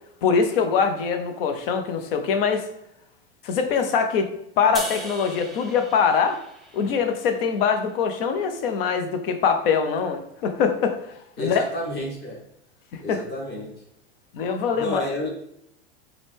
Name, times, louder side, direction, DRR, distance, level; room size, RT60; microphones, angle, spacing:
voice 1, 0.2-2.7 3.4-4.3 4.6-6.4 6.7-11.0 11.4-11.6 12.9-13.2 14.3-15.0, left 6 dB, 60° left, 7 dB, 0.7 m, -23 dB
sound 1, 4.7-8.0, right 1 dB, ahead, 0.7 m, -38 dB
voice 2, 11.4-12.4 13.0-13.7 14.7-15.3, left 1 dB, 30° left, -1 dB, 1.1 m, -30 dB
4.8 x 2.2 x 3.4 m, 0.79 s
hypercardioid pair, 100°, 32 cm